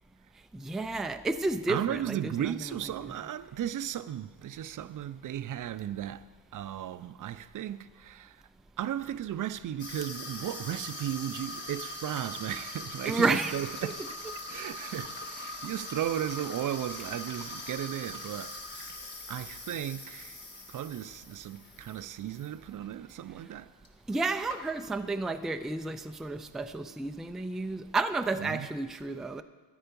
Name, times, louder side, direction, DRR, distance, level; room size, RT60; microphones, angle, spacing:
voice 1, 0.5-2.5 13.1-13.5 13.8-13.9 24.1-29.4, right 3 dB, ahead, 0.3 m, -31 dB
voice 2, 1.7-6.2 6.5-8.4 8.8-14.0 14.5-19.0 19.3-23.7 28.4-28.7, right 11 dB, 55° right, 0.5 m, -35 dB
Water tap faucet / Sink (filling or washing), 9.8-22.5 22.8-23.1 23.8-23.9 24.1-25.0, left 2 dB, 30° left, 1.5 m, -42 dB
13.5 x 9.8 x 5.3 m
wide cardioid pair, 145°, 37 cm